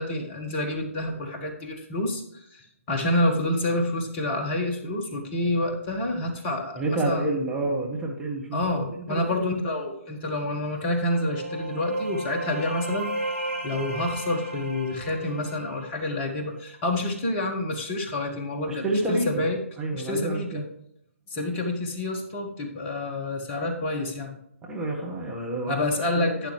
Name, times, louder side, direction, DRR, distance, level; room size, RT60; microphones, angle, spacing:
voice 1, 0.0-7.4 8.5-13.1 13.6-19.6 19.9-20.7 21.3-24.4 25.7-26.5, left 1 dB, 20° left, 2 dB, 1.5 m, -28 dB
voice 2, 6.7-8.8 9.1-9.4 18.7-19.3 19.8-20.6 24.7-26.3, right 2 dB, 5° right, -3 dB, 1.5 m, -29 dB
sound 1, 10.7-16.4, right 1 dB, 60° right, 2.7 m, -34 dB
12.0 x 8.9 x 3.2 m, 0.74 s
figure-of-eight pair, 135°, 8 cm